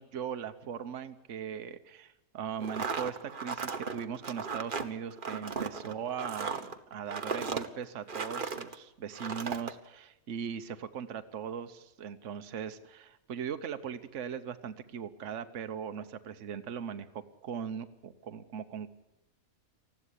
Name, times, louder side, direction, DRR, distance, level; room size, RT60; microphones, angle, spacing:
voice 1, 0.0-18.9, right 7 dB, 60° right, 9 dB, 1.3 m, -39 dB
sound 1, 2.6-8.7 9.1-9.7, right 5 dB, 40° right, 1.2 m, -36 dB
20.0 x 14.5 x 10.0 m, 0.90 s
omnidirectional pair, 1.5 m